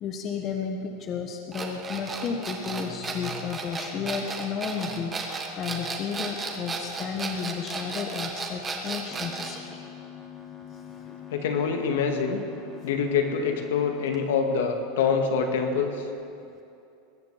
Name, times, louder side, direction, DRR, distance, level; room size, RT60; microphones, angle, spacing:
voice 1, 0.0-9.8 10.9-11.3, left 6 dB, 30° left, 3 dB, 1.2 m, -33 dB
sound 1, 1.5-9.6, right 4 dB, 20° right, 1.6 m, -34 dB
sound 2, 9.1-15.0, left 8 dB, 10° left, 2.1 m, -44 dB
voice 2, 11.3-12.4 12.8-16.0, left 6 dB, 85° left, 3 dB, 2.1 m, -25 dB
21.0 x 7.7 x 8.2 m, 2.6 s
supercardioid pair, 145°, 0 cm